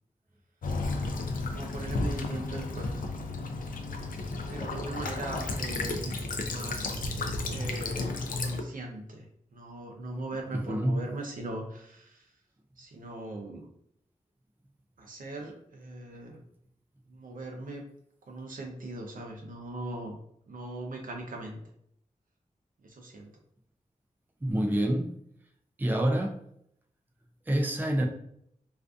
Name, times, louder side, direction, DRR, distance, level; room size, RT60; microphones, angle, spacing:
Child speech kid speaking / Bird vocalization bird call bird song / Stream, 0.6-8.6, left 3 dB, 80° left, 0.4 m, -33 dB
voice 1, 1.5-3.1 4.5-6.1 6.4-7.0 7.5-9.3 9.5-12.3 12.8-13.7 15.0-16.4 17.1-17.8 18.2-20.2 20.5-21.6 22.8-23.3, right 2 dB, 80° right, 1 dB, 0.6 m, -40 dB
voice 2, 10.5-11.0 24.4-25.1 25.8-26.4 27.5-28.1, right 1 dB, 15° right, 3 dB, 0.3 m, -27 dB
2.5 x 2.4 x 2.3 m, 0.70 s
wide cardioid pair, 95°, 14 cm